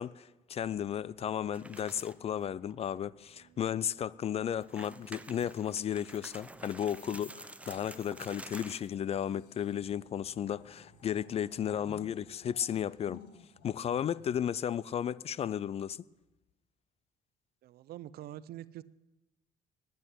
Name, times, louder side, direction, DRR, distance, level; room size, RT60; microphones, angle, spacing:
voice 1, 0.0-13.2 13.6-16.0, left 9 dB, 35° left, 0.4 m, -34 dB
sound 1, 0.5-12.4, right 6 dB, 85° right, 1.4 m, -65 dB
sound 2, 1.5-2.3 2.7-2.8 3.4-3.5 4.5-8.9, right 2 dB, 10° right, 0.6 m, -49 dB
sound 3, 5.7-7.8 8.9-15.3 16.2-16.5, left 8 dB, 80° left, 1.5 m, -57 dB
voice 2, 17.6-18.8, right 13 dB, 70° right, 0.6 m, -45 dB
10.0 x 9.2 x 9.9 m
cardioid pair, 110°, 17 cm